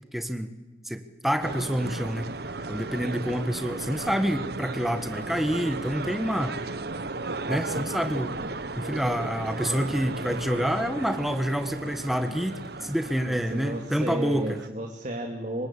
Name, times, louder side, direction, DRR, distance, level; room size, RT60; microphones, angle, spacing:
voice 1, 0.1-0.5 0.8-2.3 2.7-6.6 7.5-8.4 8.8-14.6, equal, ahead, 8 dB, 1.4 m, -28 dB
sound 1, 1.4-14.7, right 3 dB, 60° right, 1.3 m, -35 dB
voice 2, 13.2-15.7, right 1 dB, 40° right, 3 dB, 2.6 m, -33 dB
26.5 x 24.5 x 8.5 m, 1.2 s
head